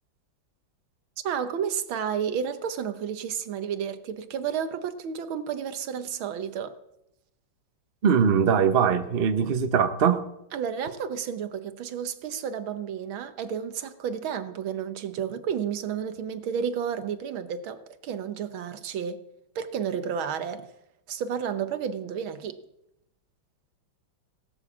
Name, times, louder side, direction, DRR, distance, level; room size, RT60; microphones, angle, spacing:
voice 1, 1.2-6.8 10.5-19.2 19.6-20.7 21.1-22.6, right 7 dB, 75° right, 1.8 m, -31 dB
voice 2, 8.0-10.3, right 7 dB, 45° right, 0.8 m, -21 dB
17.5 x 8.7 x 7.2 m
omnidirectional pair, 2.3 m